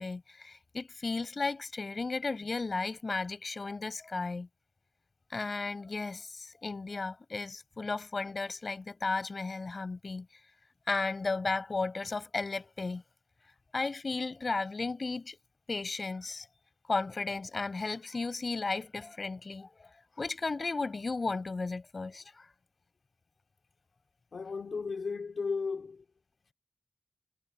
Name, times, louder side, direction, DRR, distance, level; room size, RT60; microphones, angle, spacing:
voice 1, 0.0-4.5 5.3-10.3 10.9-13.0 13.7-15.4 15.7-16.5 16.9-19.7 20.1-22.5, left 3 dB, 50° left, 7.3 m, -34 dB
voice 2, 24.3-26.0, left 4 dB, 75° left, 3.5 m, -35 dB
wide cardioid pair, 70°, 0 cm